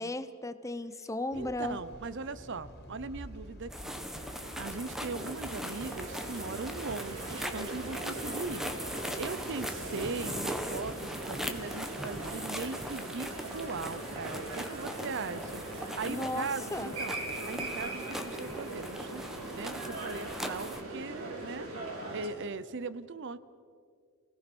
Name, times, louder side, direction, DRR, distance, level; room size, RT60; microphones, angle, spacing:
voice 1, 0.0-1.8 16.1-16.9, left 1 dB, 15° left, 12 dB, 0.8 m, -35 dB
sound 1, 1.3-10.9, equal, 50° left, 3.1 m, -50 dB
voice 2, 1.3-4.0 4.6-17.2 17.5-21.7 22.1-23.4, right 4 dB, 60° right, 15 dB, 0.7 m, -39 dB
sound 2, 3.7-20.8, equal, ahead, 1.2 m, -40 dB
sound 3, 4.1-22.3, right 2 dB, 80° right, 4.7 m, -41 dB
28.0 x 18.0 x 6.1 m, 2.2 s
head